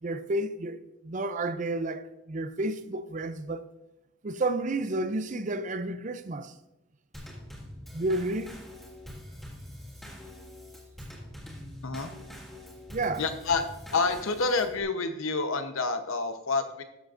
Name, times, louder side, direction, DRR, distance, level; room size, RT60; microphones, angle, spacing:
voice 1, 0.0-3.6 4.2-6.6 7.9-8.6 12.9-13.2, right 2 dB, 35° right, 0.4 m, -31 dB
Drum kit / Snare drum / Bass drum, 7.1-14.8, left 1 dB, ahead, 2.0 m, -44 dB
voice 2, 13.2-13.7 13.9-16.8, left 3 dB, 70° left, 0.9 m, -28 dB
13.5 x 7.4 x 2.5 m
head